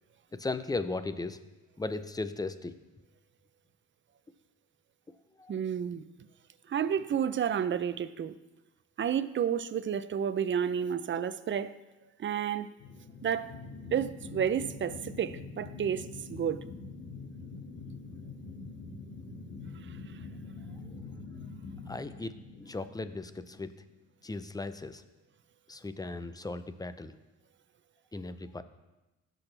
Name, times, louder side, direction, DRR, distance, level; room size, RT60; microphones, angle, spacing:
voice 1, 0.3-1.4 1.8-2.8 5.4-5.6 21.9-23.7 24.2-25.0 25.7-27.1 28.1-28.6, left 3 dB, 15° left, 0.6 m, -37 dB
voice 2, 5.5-6.0 6.7-8.3 9.0-11.7 12.2-12.7 13.2-13.5 13.9-16.6, right 8 dB, 40° right, 0.5 m, -31 dB
sound 1, 12.8-23.7, left 4 dB, 65° left, 2.0 m, -45 dB
16.5 x 6.3 x 3.3 m
cardioid pair, 90°, 30 cm